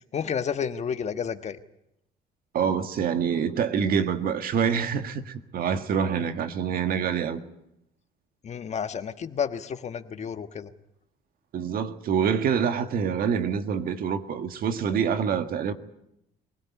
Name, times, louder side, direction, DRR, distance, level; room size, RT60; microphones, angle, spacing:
voice 1, 0.1-1.6 8.4-10.7, left 7 dB, 40° left, 1.4 m, -31 dB
voice 2, 2.5-7.4 11.5-15.7, right 7 dB, 60° right, 1.8 m, -26 dB
23.5 x 17.5 x 9.7 m
cardioid pair, 110°, 17 cm